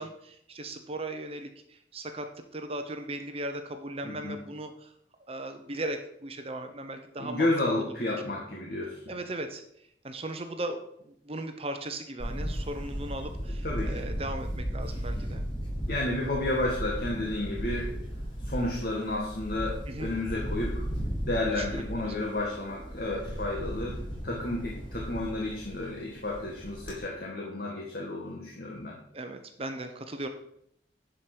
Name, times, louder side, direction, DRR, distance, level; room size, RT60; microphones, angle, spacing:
voice 1, 0.0-4.9 5.3-7.5 7.8-8.1 9.1-9.6 10.0-15.4 19.9-20.1 21.5-22.1 29.1-30.3, right 1 dB, 30° right, 6 dB, 0.8 m, -37 dB
voice 2, 4.0-4.4 7.2-9.0 13.6-14.0 15.9-18.0 18.4-20.9 21.3-24.0 24.2-29.0, left 2 dB, 55° left, -2 dB, 1.7 m, -31 dB
Camera, 12.2-27.0, equal, 25° left, 3.5 m, -36 dB
11.0 x 5.2 x 6.0 m, 0.73 s
head